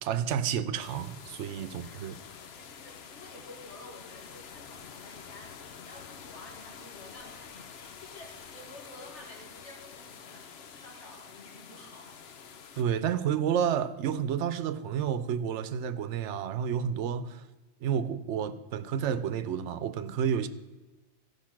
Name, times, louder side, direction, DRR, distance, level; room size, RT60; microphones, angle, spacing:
voice 1, 0.0-2.1 12.8-17.4 17.8-20.5, right 8 dB, 90° right, 0.9 m, -30 dB
sound 1, 0.8-12.8, left 6 dB, 65° left, 0.9 m, -48 dB
voice 2, 1.5-2.1 2.5-12.2, left 1 dB, 85° left, 2.4 m, -51 dB
14.5 x 5.5 x 5.9 m
omnidirectional pair, 1.2 m